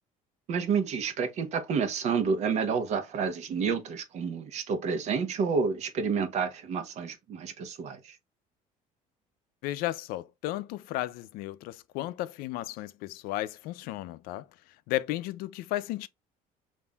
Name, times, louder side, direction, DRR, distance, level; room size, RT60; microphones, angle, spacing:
voice 1, 0.5-8.2, right 5 dB, 50° right, 0.8 m, -29 dB
voice 2, 9.6-14.5 14.9-16.1, left 15 dB, 75° left, 0.4 m, -34 dB
5.4 x 2.6 x 2.2 m
cardioid pair, 160°, 15 cm